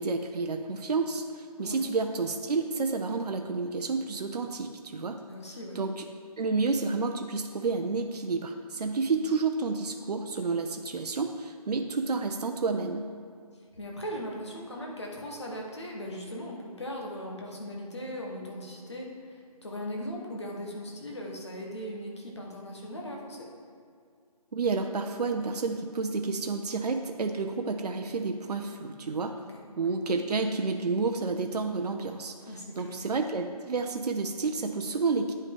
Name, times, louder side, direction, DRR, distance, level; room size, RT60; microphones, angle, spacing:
voice 1, 0.0-5.2 5.7-6.0 6.4-13.1 24.5-29.4 29.8-35.3, right 4 dB, 75° right, 5 dB, 0.6 m, -30 dB
voice 2, 5.3-5.8 13.7-23.5 29.4-29.9 32.5-33.0, equal, 45° left, -1 dB, 1.3 m, -39 dB
9.2 x 5.4 x 3.6 m, 2.2 s
hypercardioid pair, 180°, 20 cm